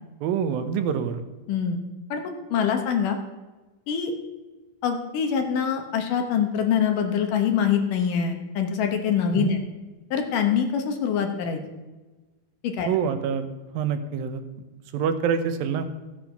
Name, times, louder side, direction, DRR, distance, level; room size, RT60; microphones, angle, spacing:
voice 1, 0.2-1.2 9.4-9.6 12.9-13.5 13.7-14.4 14.9-15.9, right 7 dB, 80° right, 9 dB, 2.6 m, -25 dB
voice 2, 1.5-1.8 2.1-3.2 3.9-4.1 4.8-9.6 10.1-11.6 12.6-12.9, left 7 dB, 70° left, 5 dB, 2.6 m, -24 dB
14.5 x 8.2 x 5.8 m, 1.2 s
omnidirectional pair, 4.1 m